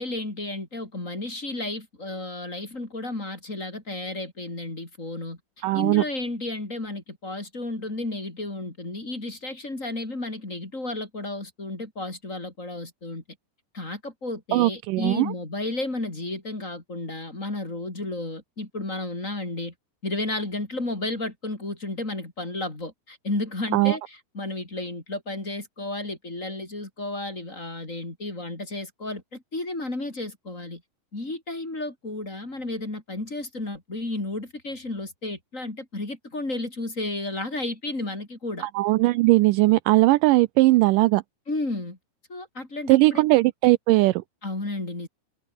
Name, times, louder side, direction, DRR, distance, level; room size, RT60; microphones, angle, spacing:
voice 1, 0.0-5.4 5.7-13.2 13.7-19.7 20.0-30.8 31.1-38.7 41.5-42.0 42.3-43.2 44.4-45.1, left 2 dB, 20° left, 4.4 m, -32 dB
voice 2, 5.6-6.0 14.5-15.3 23.7-24.0 38.6-41.2 42.9-44.2, right 19 dB, 80° right, 2.0 m, -19 dB
omnidirectional pair, 4.1 m